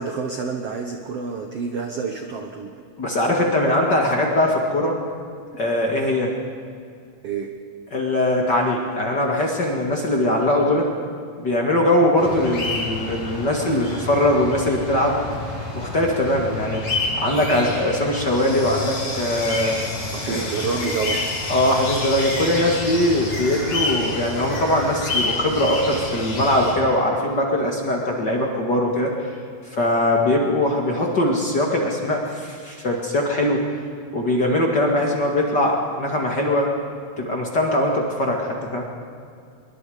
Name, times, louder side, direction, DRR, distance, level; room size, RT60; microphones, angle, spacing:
voice 1, 0.0-2.8 7.2-7.5 20.1-21.2, right 5 dB, 85° right, 4 dB, 1.3 m, -28 dB
voice 2, 3.0-5.0 5.6-6.3 7.9-10.9 11.4-15.2 15.7-16.8 17.2-19.8 20.3-20.5 21.5-29.1 29.7-33.7 34.1-36.7 37.2-38.8, left 1 dB, 35° left, 0 dB, 1.8 m, -21 dB
sound 1, 12.2-26.7, left 2 dB, 55° left, 7.2 m, -28 dB
26.0 x 22.5 x 5.1 m, 2.4 s
omnidirectional pair, 4.7 m